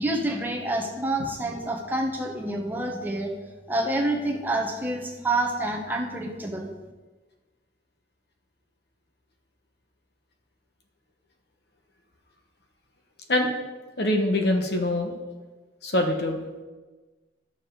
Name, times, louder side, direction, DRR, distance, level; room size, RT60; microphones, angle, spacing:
voice 1, 0.0-3.3 3.7-6.7, right 1 dB, 10° right, 0 dB, 1.0 m, -28 dB
voice 2, 14.0-15.1 15.8-16.4, left 1 dB, 60° left, 3 dB, 1.2 m, -24 dB
12.0 x 6.8 x 3.9 m, 1.3 s
head